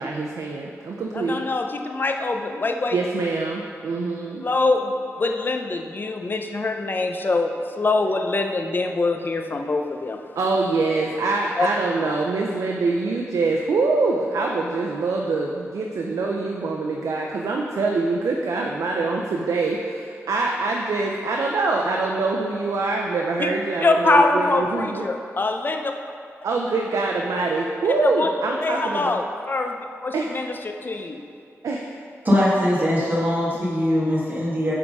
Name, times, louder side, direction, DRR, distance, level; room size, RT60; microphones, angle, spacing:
voice 1, 0.0-1.4 2.9-4.4 10.4-25.1 26.4-29.1 30.1-30.3 31.6-31.9, right 3 dB, 90° right, 0 dB, 0.6 m, -24 dB
voice 2, 1.1-3.0 4.4-4.9 5.2-10.2 11.6-11.7 23.4-23.5 23.8-25.9 28.0-28.3 28.6-29.8 30.0-30.6 30.8-31.2, left 3 dB, 40° left, 4 dB, 0.6 m, -23 dB
voice 3, 32.2-34.7, left 1 dB, 35° right, -6 dB, 2.0 m, -21 dB
9.4 x 3.7 x 5.3 m, 2.5 s
wide cardioid pair, 80°, 5 cm